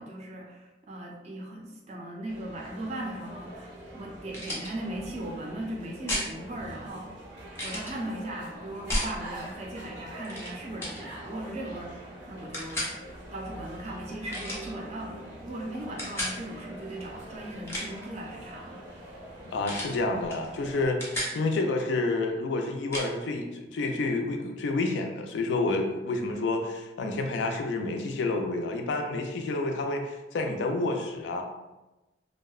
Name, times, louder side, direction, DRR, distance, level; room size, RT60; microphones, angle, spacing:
voice 1, 0.0-7.2 7.6-12.9 13.3-18.9, right 1 dB, 40° right, -1 dB, 0.4 m, -38 dB
sound 1, 2.3-20.9, right 1 dB, 85° right, 0.6 m, -44 dB
sound 2, 4.3-4.7 6.1-6.3 7.5-7.9 8.9-9.1 10.2-10.5 10.8-11.0 12.5-12.9 14.3-14.7 16.0-16.4 17.5-18.0 19.6-20.0 20.3-20.5 20.7-21.4 22.9-23.1, left 1 dB, 15° left, 0.5 m, -32 dB
voice 2, 19.4-21.0 21.3-31.4, left 2 dB, 80° left, 4 dB, 0.3 m, -29 dB
2.6 x 2.1 x 2.3 m, 1.0 s
head